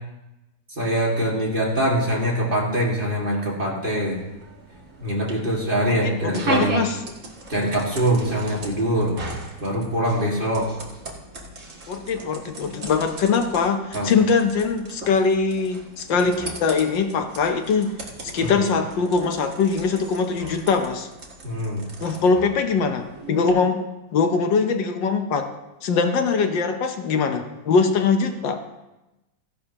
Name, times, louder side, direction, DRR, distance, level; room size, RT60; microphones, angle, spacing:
voice 1, 0.8-4.2 5.0-6.8 7.5-9.2 9.6-10.7 13.9-14.1 18.4-18.5 21.4-21.9, right 1 dB, 30° right, -3 dB, 2.3 m, -23 dB
sound 1, 4.0-23.5, right 3 dB, 45° right, 2.0 m, -37 dB
voice 2, 5.9-7.0 11.9-17.9 18.2-21.1 22.0-23.8 24.1-25.5 25.8-28.7, left 5 dB, 75° left, 6 dB, 1.6 m, -22 dB
15.5 x 11.0 x 2.9 m, 0.98 s
omnidirectional pair, 2.0 m